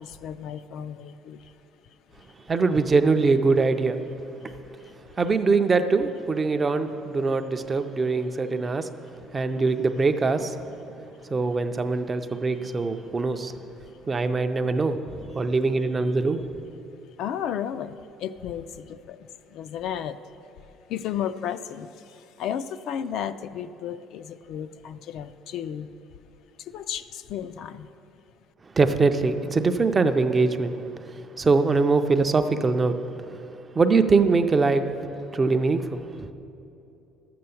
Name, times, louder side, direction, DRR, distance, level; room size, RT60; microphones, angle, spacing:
voice 1, 0.0-1.4 17.2-19.2 19.5-20.2 20.9-21.9 22.2-25.9 26.7-27.9, left 9 dB, 50° left, 12 dB, 0.3 m, -33 dB
voice 2, 2.5-4.0 5.2-8.9 9.3-10.6 11.3-13.5 14.1-16.4 28.8-30.7 31.4-32.9 33.7-34.9 35.3-36.0, right 4 dB, 15° right, 8 dB, 0.4 m, -22 dB
12.0 x 7.7 x 7.0 m, 2.9 s
cardioid pair, 175°, 0 cm